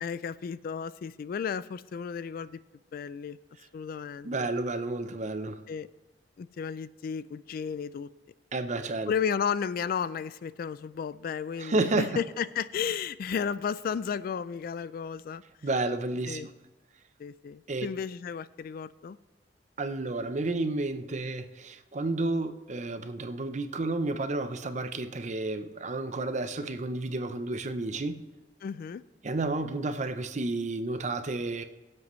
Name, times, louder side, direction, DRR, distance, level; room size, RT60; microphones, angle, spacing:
voice 1, 0.0-2.6 2.9-3.4 3.7-4.5 5.7-5.9 6.4-8.1 9.1-15.4 16.3-16.5 17.2-19.2 28.6-29.0, left 7 dB, 55° left, 0.3 m, -33 dB
voice 2, 4.2-5.6 8.5-9.1 11.6-12.1 15.6-16.5 17.7-17.9 19.8-28.2 29.2-31.6, right 2 dB, 40° right, 0.7 m, -31 dB
23.0 x 7.6 x 3.1 m
head